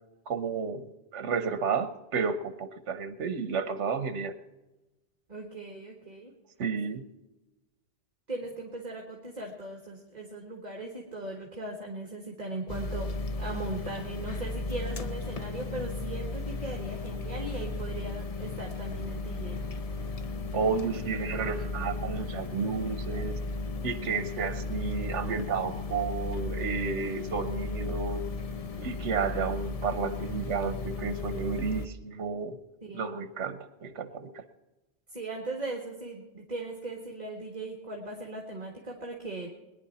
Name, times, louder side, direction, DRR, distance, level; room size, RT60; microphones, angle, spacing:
voice 1, 0.3-4.3 6.6-7.1 20.5-23.4 23.8-28.2 28.8-32.6 32.9-34.4, right 5 dB, 80° right, 11 dB, 1.3 m, -32 dB
voice 2, 5.3-6.3 6.8-6.9 8.3-19.7 32.9-33.1 35.1-39.5, right 2 dB, 35° right, 0 dB, 1.9 m, -39 dB
sound 1, 12.7-31.9, left 3 dB, 35° left, 0.8 m, -35 dB
22.0 x 10.5 x 4.3 m, 1.1 s
omnidirectional pair, 1.2 m